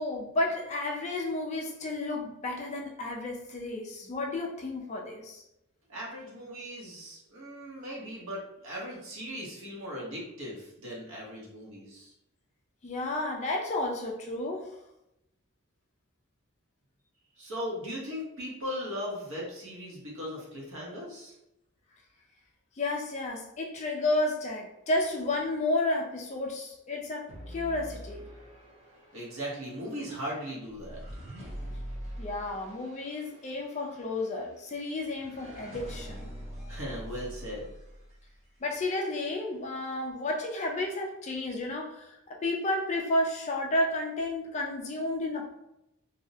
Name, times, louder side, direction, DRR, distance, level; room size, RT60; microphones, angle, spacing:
voice 1, 0.0-5.4 12.8-14.7 22.8-28.3 32.2-36.3 38.6-42.2 42.4-45.6, left 2 dB, 30° left, 1 dB, 0.3 m, -32 dB
voice 2, 5.9-12.1 17.4-21.3 29.1-31.0 36.7-37.7, equal, 65° right, -4 dB, 1.0 m, -38 dB
sound 1, 27.3-38.6, equal, 30° right, 0.7 m, -44 dB
2.6 x 2.1 x 2.7 m, 0.85 s
head